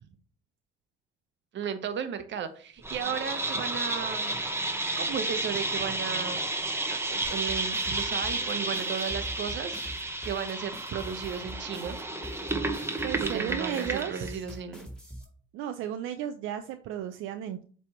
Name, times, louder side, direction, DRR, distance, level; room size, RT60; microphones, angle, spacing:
voice 1, 1.5-4.4 5.0-6.4 6.9-9.8 10.2-12.0 13.2-14.9, right 7 dB, 65° right, 10 dB, 1.0 m, -35 dB
sound 1, 2.8-14.3, right 2 dB, 10° right, 0.9 m, -32 dB
sound 2, 7.2-15.2, equal, 5° left, 2.1 m, -42 dB
voice 2, 13.0-14.4 15.5-17.6, right 10 dB, 90° right, 8 dB, 0.5 m, -34 dB
7.6 x 3.4 x 4.3 m, 0.43 s
cardioid pair, 90°, 20 cm